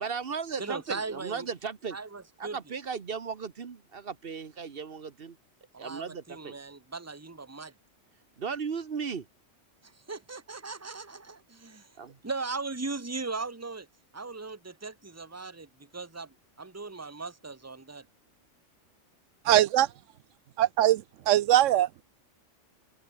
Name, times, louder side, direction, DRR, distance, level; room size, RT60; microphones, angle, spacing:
voice 1, 0.0-2.0 2.4-5.4 5.8-6.6 8.4-9.3 12.0-12.2, right 6 dB, 50° right, 1.3 m, -36 dB
voice 2, 0.6-1.5 1.9-2.6 5.7-7.7 10.1-11.9 12.2-13.9 14.1-18.1, right 3 dB, 15° right, 1.3 m, -38 dB
voice 3, 19.5-19.9 20.6-22.0, right 13 dB, 85° right, 1.0 m, -22 dB
omnidirectional pair, 1.3 m